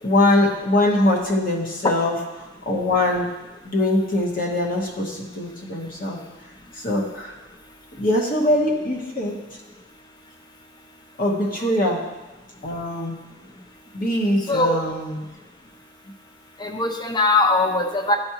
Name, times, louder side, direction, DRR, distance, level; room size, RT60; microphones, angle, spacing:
voice 1, 0.0-2.2 2.7-3.3 3.6-6.2 6.7-7.4 8.0-9.4 11.2-12.0 12.6-13.2 13.9-15.2, left 1 dB, 45° left, -1 dB, 1.1 m, -22 dB
voice 2, 14.5-14.8 16.6-18.2, left 2 dB, 20° left, 4 dB, 0.6 m, -20 dB
11.5 x 4.7 x 2.9 m, 1.1 s
head